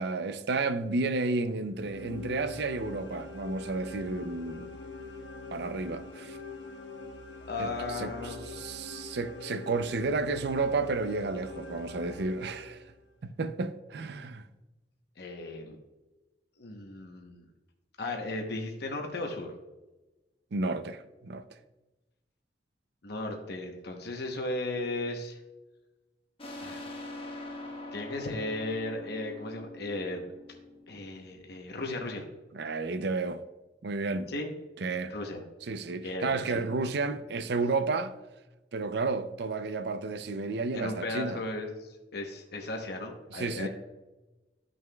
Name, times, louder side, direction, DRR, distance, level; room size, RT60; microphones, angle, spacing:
voice 1, 0.0-4.7 5.5-6.4 7.6-12.8 13.2-14.4 20.5-21.4 32.5-33.4 33.8-34.3 34.8-35.1 35.7-38.1 38.7-41.4 43.3-43.7, right 3 dB, 65° right, 0.5 m, -32 dB
sound 1, 1.7-13.0, left 3 dB, 85° left, 1.1 m, -44 dB
voice 2, 7.5-8.4 15.2-15.8 16.6-17.4 18.0-19.5 23.0-25.4 26.6-26.8 27.9-30.2 30.9-32.2 34.3-34.5 35.1-35.4 36.0-36.6 40.7-43.7, left 2 dB, 65° left, 0.9 m, -36 dB
sound 2, 26.4-31.7, left 2 dB, 30° left, 0.9 m, -43 dB
12.5 x 6.2 x 2.3 m
head